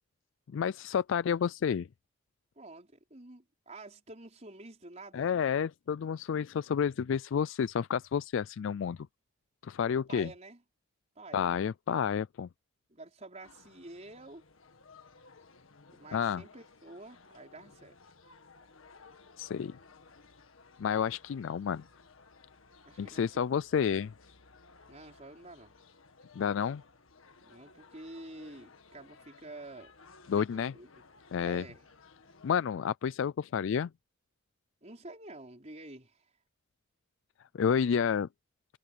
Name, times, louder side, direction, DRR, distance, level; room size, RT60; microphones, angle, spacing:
voice 1, 0.5-1.9 5.1-9.1 9.6-10.3 11.3-12.5 16.1-16.4 19.4-19.8 20.8-21.8 23.0-24.1 26.3-26.8 30.3-30.7 31.3-31.6 32.4-33.9 37.5-38.3, left 7 dB, 65° left, 0.3 m, -30 dB
voice 2, 2.5-5.3 10.1-10.6 11.1-11.5 12.9-14.4 15.9-18.0 22.8-23.5 24.9-25.8 27.4-29.9 30.3-30.9 31.4-31.9 34.8-36.3, right 2 dB, 35° right, 4.8 m, -49 dB
sound 1, 13.4-32.7, left 4 dB, 80° left, 1.7 m, -58 dB
head